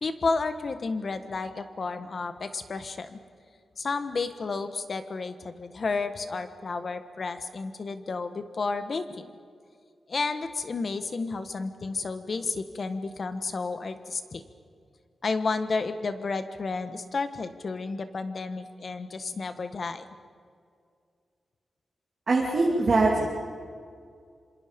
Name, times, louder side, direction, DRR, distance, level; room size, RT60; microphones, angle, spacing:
voice 1, 0.0-3.2 3.8-9.3 10.1-14.4 15.2-20.0, left 4 dB, 40° left, 10 dB, 1.4 m, -31 dB
voice 2, 22.3-23.3, right 3 dB, 35° right, -2 dB, 2.7 m, -22 dB
27.0 x 27.0 x 5.3 m, 2.2 s
wide cardioid pair, 175°, 0 cm